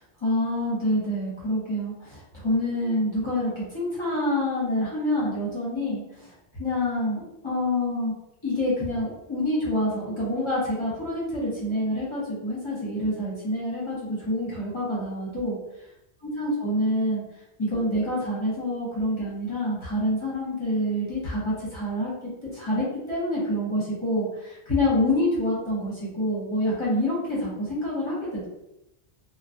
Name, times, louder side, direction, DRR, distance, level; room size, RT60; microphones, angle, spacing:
voice 1, 0.2-6.3 6.6-8.1 8.4-15.6 16.4-17.2 17.6-22.1 22.4-28.5, left 1 dB, 30° left, -8 dB, 0.9 m, -27 dB
2.3 x 2.2 x 2.6 m, 0.87 s
omnidirectional pair, 1.1 m